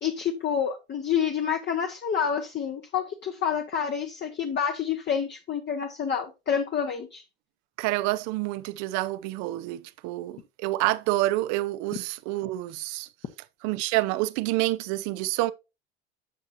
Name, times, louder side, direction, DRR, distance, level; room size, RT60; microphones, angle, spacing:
voice 1, 0.0-7.2, left 7 dB, 35° left, 1.2 m, -28 dB
voice 2, 7.8-13.1 13.6-15.5, right 17 dB, 60° right, 0.8 m, -28 dB
9.4 x 7.3 x 2.7 m
hypercardioid pair, 80°, 32 cm